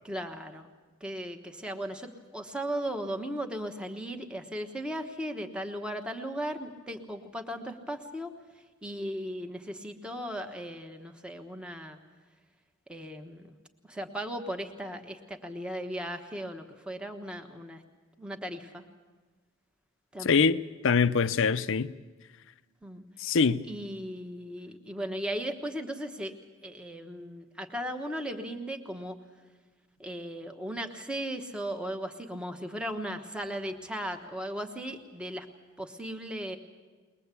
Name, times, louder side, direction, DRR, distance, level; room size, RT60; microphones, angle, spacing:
voice 1, 0.0-0.7 1.0-8.3 8.8-12.0 12.9-13.6 13.9-17.8 18.2-18.9 20.1-20.5 22.8-23.4 23.7-26.3 26.6-29.2 30.0-35.5 35.8-36.6, equal, 5° right, 1.2 m, -37 dB
voice 2, 20.2-21.9 23.2-23.6, left 5 dB, 65° left, 0.6 m, -24 dB
21.5 x 20.0 x 8.3 m
head